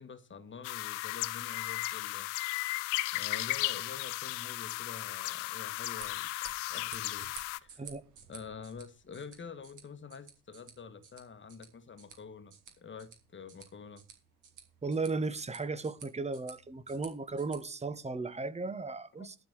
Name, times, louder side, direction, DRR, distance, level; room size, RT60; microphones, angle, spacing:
voice 1, 0.0-2.3 2.7-7.3 7.6-7.9 8.3-14.0 19.2-19.3, left 5 dB, 30° left, 1.4 m, -47 dB
sound 1, 0.6-7.6, left 20 dB, 75° left, 0.6 m, -35 dB
sound 2, 5.7-17.6, right 7 dB, 55° right, 3.0 m, -54 dB
voice 2, 14.8-19.3, right 3 dB, 20° right, 1.1 m, -35 dB
12.0 x 4.7 x 7.9 m
hypercardioid pair, 50°, 37 cm